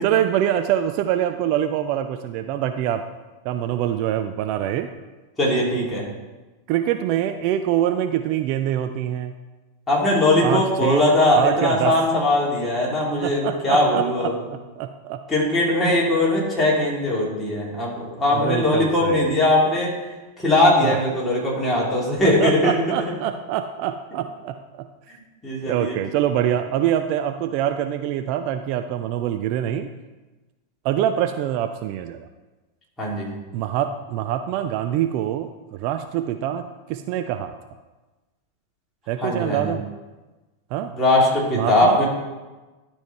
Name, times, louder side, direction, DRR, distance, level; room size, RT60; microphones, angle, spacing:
voice 1, 0.0-3.0 3.4-4.9 6.7-9.3 10.4-11.0 11.3-12.0 13.2-15.2 18.3-19.4 20.8-21.0 22.2-24.9 25.6-29.9 30.8-32.3 33.5-37.5 39.1-39.9 40.7-40.9 41.5-42.0, right 11 dB, 45° right, 8 dB, 0.4 m, -25 dB
voice 2, 5.4-6.0 9.9-14.3 15.3-19.9 20.4-22.8 25.4-25.9 33.0-33.3 39.2-39.7 41.0-42.1, left 1 dB, 15° left, -5 dB, 2.8 m, -20 dB
11.5 x 4.4 x 4.5 m, 1.2 s
figure-of-eight pair, 90°, 0 cm